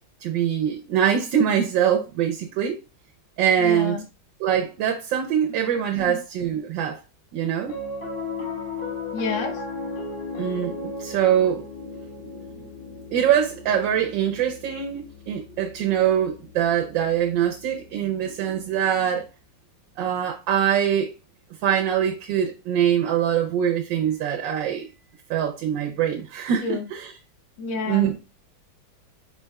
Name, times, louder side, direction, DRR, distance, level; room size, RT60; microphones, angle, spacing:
voice 1, 0.2-2.8 3.4-4.0 4.4-7.0 7.3-7.8 10.4-12.0 12.2-12.6 13.1-19.2 20.0-21.1 21.6-25.0 25.3-27.1 27.9-28.2, right 9 dB, 80° right, 1.4 m, -23 dB
voice 2, 3.6-4.0 6.0-6.2 9.1-9.6 26.6-26.9 27.6-28.2, left 4 dB, 70° left, 1.6 m, -29 dB
Piano, 7.6-18.1, left 3 dB, 45° left, 0.7 m, -36 dB
4.6 x 4.6 x 2.3 m
omnidirectional pair, 2.1 m